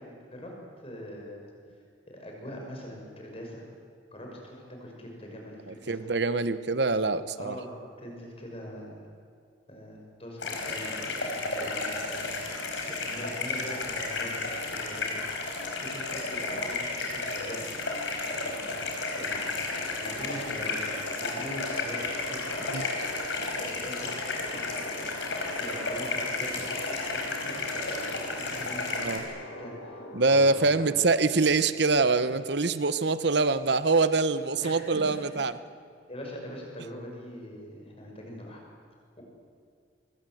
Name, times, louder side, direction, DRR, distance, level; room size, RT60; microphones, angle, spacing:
voice 1, 0.0-1.5 2.1-3.6 4.1-6.1 7.4-9.1 9.7-12.6 12.9-15.1 15.7-17.6 18.3-18.8 19.1-20.8 21.2-22.9 23.4-25.1 25.6-27.7 27.9-29.1 29.4-31.0 34.6-35.4 36.1-38.6 39.2-39.3, equal, 30° left, 0 dB, 6.2 m, -43 dB
voice 2, 5.7-7.6 22.7-22.8 28.9-29.2 30.1-35.5, right 3 dB, 55° right, 13 dB, 1.0 m, -24 dB
sound 1, 10.4-29.2, left 3 dB, 65° left, 5.1 m, -33 dB
sound 2, 18.3-30.7, left 1 dB, 90° left, 4.6 m, -44 dB
26.5 x 23.0 x 7.9 m, 2.3 s
head